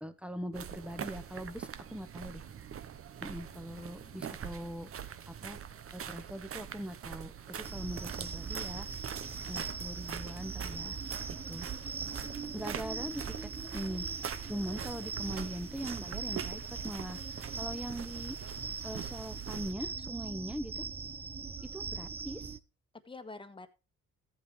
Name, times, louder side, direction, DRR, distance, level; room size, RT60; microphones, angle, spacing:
voice 1, 0.0-2.4 3.2-4.9 5.3-5.6 5.9-8.9 9.5-11.0 11.5-11.7 12.5-14.1 14.5-17.2 17.6-18.4 18.8-20.9 21.7-22.5, equal, 5° right, 10 dB, 1.0 m, -41 dB
sound 1, 0.5-19.7, right 8 dB, 45° right, 0.9 m, -44 dB
voice 2, 3.8-4.4 12.0-12.3 22.9-23.7, left 3 dB, 15° left, 10 dB, 1.4 m, -49 dB
sound 2, 7.6-22.6, right 5 dB, 20° right, 0.6 m, -40 dB
14.0 x 8.6 x 3.2 m, 0.29 s
cardioid pair, 90°, 30 cm